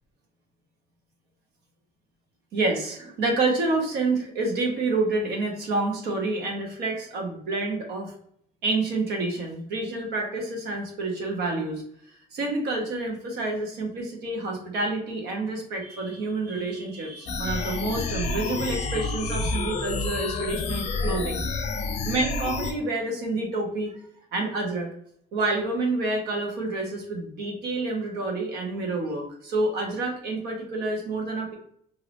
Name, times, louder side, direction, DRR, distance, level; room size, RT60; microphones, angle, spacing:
voice 1, 2.5-8.1 8.6-11.8 12.3-21.4 22.0-24.0 24.3-24.9 25.3-31.5, right 2 dB, 75° right, 1 dB, 1.1 m, -28 dB
sound 1, 17.3-22.7, left 3 dB, 40° left, 0.5 m, -29 dB
3.3 x 2.8 x 2.5 m, 0.66 s
cardioid pair, 110°, 17 cm